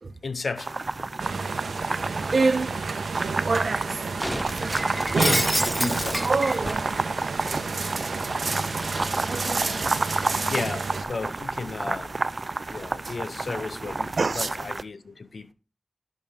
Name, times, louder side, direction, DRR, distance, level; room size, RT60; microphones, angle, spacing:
voice 1, 0.2-0.8 5.1-6.3 10.5-12.2 12.7-15.5, left 4 dB, 65° left, 0.7 m, -33 dB
sound 1, 0.6-14.8, right 3 dB, 45° right, 0.4 m, -31 dB
sound 2, 1.2-11.0, right 4 dB, 90° right, 1.0 m, -31 dB
voice 2, 2.3-2.8 3.4-4.0 4.5-5.0 6.2-7.0 7.4-10.6 13.0-13.1 13.6-14.5, right 3 dB, 60° right, 1.0 m, -29 dB
Shatter, 4.2-7.0 7.5-10.6, equal, ahead, 0.6 m, -31 dB
11.5 x 5.4 x 3.6 m
wide cardioid pair, 70°, 0 cm